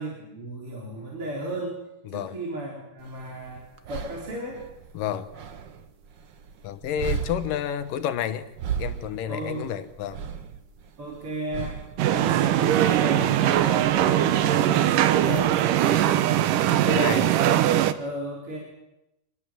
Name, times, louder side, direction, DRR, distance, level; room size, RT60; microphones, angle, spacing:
voice 1, 0.0-1.8 2.1-4.6 9.3-9.7 11.0-11.8 12.1-15.0 17.5-18.6, right 1 dB, 40° right, 4.9 m, -34 dB
voice 2, 2.1-2.4 4.9-5.3 6.6-8.5 8.8-10.2 12.1-12.3 15.2-15.5 16.6-17.4, left 10 dB, 85° left, 2.8 m, -30 dB
sound 1, 3.0-16.0, right 7 dB, 65° right, 1.1 m, -38 dB
sound 2, 12.0-17.9, right 12 dB, 80° right, 2.6 m, -21 dB
26.0 x 20.0 x 7.5 m
omnidirectional pair, 3.8 m